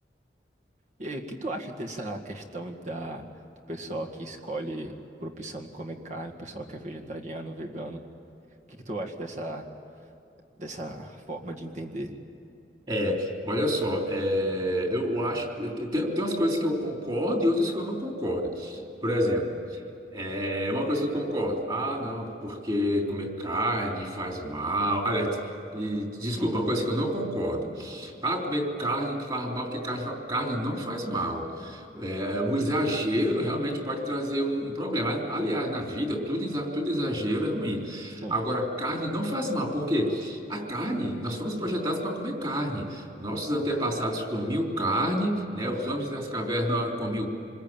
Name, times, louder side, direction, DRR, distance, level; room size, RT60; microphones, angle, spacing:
voice 1, 1.0-3.2 3.7-4.9 5.2-8.0 8.9-9.6 10.6-12.1 26.4-26.6 38.2-38.4, right 1 dB, 40° right, 1 dB, 1.9 m, -36 dB
voice 2, 12.9-19.8 20.1-47.3, equal, 25° right, 1 dB, 3.6 m, -28 dB
27.0 x 21.0 x 9.0 m, 2.8 s
head